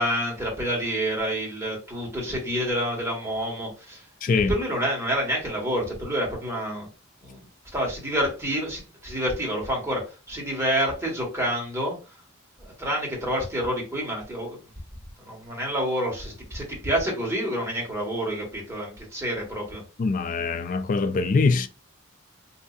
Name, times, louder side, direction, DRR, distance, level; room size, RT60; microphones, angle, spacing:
voice 1, 0.0-6.9 7.2-7.4 7.7-12.0 12.6-14.6 15.2-19.8, equal, 15° right, 1.3 m, -28 dB
voice 2, 4.2-4.5 20.0-21.7, left 4 dB, 40° left, 0.3 m, -23 dB
3.9 x 2.6 x 2.3 m
head